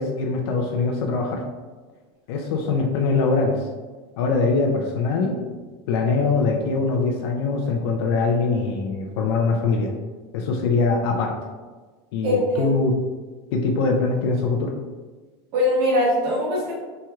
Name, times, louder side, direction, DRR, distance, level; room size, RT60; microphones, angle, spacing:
voice 1, 0.0-1.4 2.3-3.6 4.2-5.3 5.9-9.9 10.3-11.3 12.1-12.9 13.5-14.7, left 4 dB, 80° left, 2 dB, 0.4 m, -22 dB
voice 2, 12.2-12.7 15.5-16.7, left 1 dB, 60° right, -7 dB, 1.0 m, -21 dB
3.1 x 2.8 x 2.3 m, 1.3 s
supercardioid pair, 160°, 13 cm